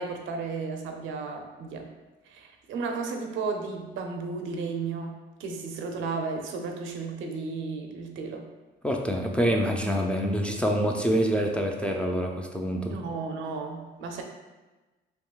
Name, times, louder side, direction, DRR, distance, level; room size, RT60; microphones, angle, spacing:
voice 1, 0.0-1.9 2.3-8.5 12.9-14.2, right 4 dB, 85° right, 3 dB, 0.5 m, -34 dB
voice 2, 8.8-13.0, equal, 5° left, 0 dB, 0.3 m, -26 dB
3.7 x 2.7 x 2.3 m, 1.2 s
cardioid pair, 90°, 20 cm